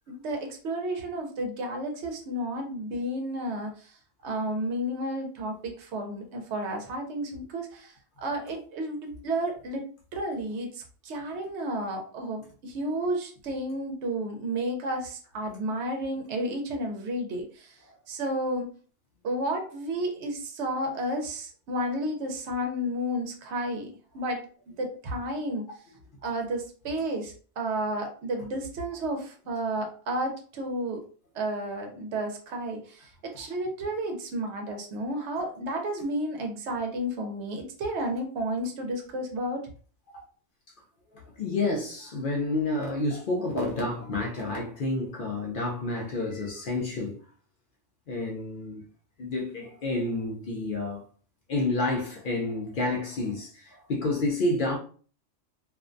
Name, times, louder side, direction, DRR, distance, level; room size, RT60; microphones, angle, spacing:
voice 1, 0.1-4.0 4.2-9.8 10.1-17.8 18.1-18.7 19.2-25.6 26.2-31.0 31.3-39.6, right 1 dB, 70° right, 0.8 m, -32 dB
voice 2, 41.4-47.2 48.1-48.8 49.2-51.0 51.5-54.8, left 2 dB, 60° left, 0.6 m, -29 dB
2.4 x 2.1 x 2.5 m
omnidirectional pair, 1.2 m